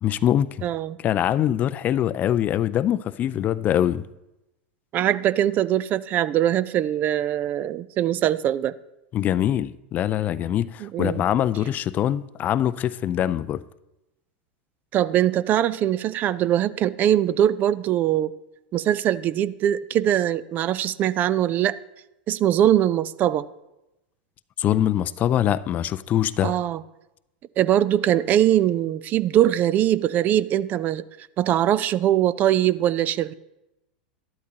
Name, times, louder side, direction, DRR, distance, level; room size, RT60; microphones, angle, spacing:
voice 1, 0.0-0.7 1.0-4.0 9.1-13.6 24.6-26.6, left 11 dB, 35° left, 0.4 m, -23 dB
voice 2, 0.6-1.0 4.9-8.7 10.8-11.2 14.9-18.3 18.7-21.8 22.3-23.5 26.4-26.8 27.6-31.0 31.4-33.3, right 11 dB, 35° right, 0.4 m, -22 dB
12.5 x 12.0 x 2.8 m
hypercardioid pair, 95°, 5 cm